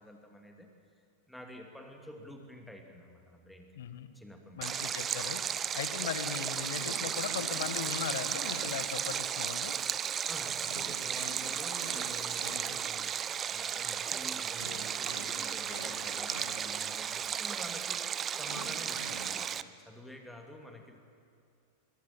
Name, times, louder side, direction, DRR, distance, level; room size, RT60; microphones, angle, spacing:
voice 1, 0.0-3.7 4.1-4.6 10.3-21.0, left 1 dB, ahead, 2 dB, 2.6 m, -49 dB
voice 2, 3.8-4.1 4.6-9.8 12.5-12.8, left 8 dB, 60° left, 10 dB, 1.7 m, -39 dB
Stream, 4.6-19.6, right 8 dB, 25° right, 0.7 m, -35 dB
sound 1, 6.8-9.4 10.7-13.3 14.6-17.2 18.5-19.3, equal, 85° right, 6.1 m, -47 dB
25.0 x 22.0 x 7.7 m, 2.5 s
figure-of-eight pair, 90°, 0 cm